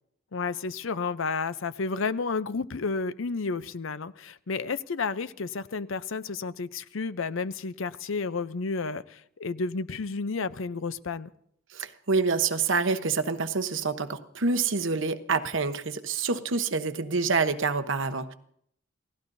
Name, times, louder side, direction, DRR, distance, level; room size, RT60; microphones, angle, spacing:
voice 1, 0.3-11.3, left 4 dB, 70° left, 0.6 m, -31 dB
voice 2, 11.7-18.3, right 4 dB, 65° right, 1.0 m, -27 dB
29.0 x 17.0 x 2.7 m
head